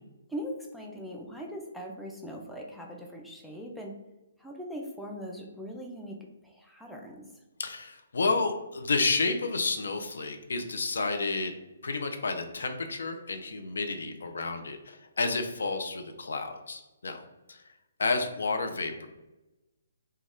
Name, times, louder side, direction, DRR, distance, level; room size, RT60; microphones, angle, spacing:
voice 1, 0.3-4.0 4.4-6.2 6.4-7.2, equal, ahead, -2 dB, 0.4 m, -40 dB
voice 2, 7.6-11.5 11.8-17.2 17.5-17.6 18.0-19.1, left 3 dB, 60° left, 5 dB, 0.4 m, -30 dB
2.9 x 2.2 x 3.5 m, 1.0 s
figure-of-eight pair, 130°, 0 cm